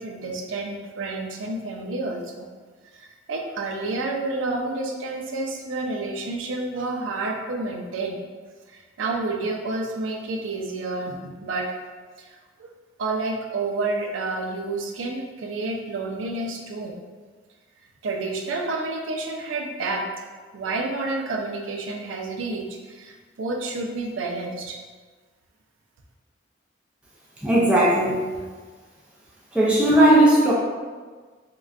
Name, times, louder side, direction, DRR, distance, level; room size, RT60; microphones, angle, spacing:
voice 1, 0.0-2.5 2.9-8.2 8.7-11.8 12.2-12.7 13.0-17.0 18.0-20.0 20.5-24.8, right 3 dB, 85° right, 1 dB, 0.4 m, -29 dB
voice 2, 27.4-28.3 29.5-30.5, right 1 dB, 5° right, -6 dB, 0.4 m, -17 dB
3.7 x 2.2 x 2.4 m, 1.4 s
head